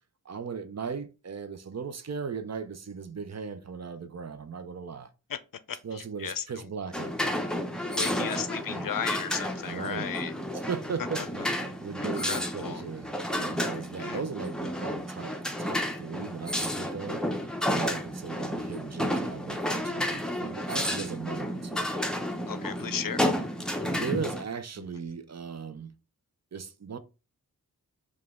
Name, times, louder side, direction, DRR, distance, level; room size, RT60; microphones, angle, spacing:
voice 1, 0.2-5.1 5.8-7.5 8.2-8.5 9.6-10.1 10.5-17.2 17.8-21.8 23.8-25.9 26.5-27.0, right 6 dB, 45° right, 0.5 m, -38 dB
voice 2, 5.7-6.7 7.8-10.3 12.0-12.8 14.0-14.2 22.5-23.3, left 8 dB, 65° left, 0.5 m, -35 dB
sound 1, 6.9-24.4, equal, ahead, 0.6 m, -31 dB
4.8 x 2.4 x 3.5 m
wide cardioid pair, 55°, 36 cm